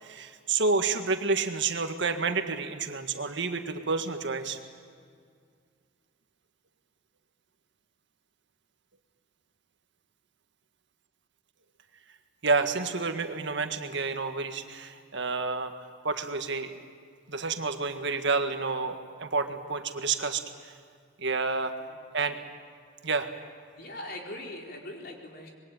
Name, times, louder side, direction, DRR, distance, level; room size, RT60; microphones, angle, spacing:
voice 1, 0.0-4.6 12.4-16.7 17.3-20.7 21.2-21.7 22.1-22.4 23.0-23.3, right 4 dB, 65° right, 6 dB, 1.8 m, -29 dB
voice 2, 23.8-25.5, left 1 dB, 55° left, 1 dB, 4.3 m, -41 dB
25.5 x 22.0 x 9.1 m, 2.1 s
head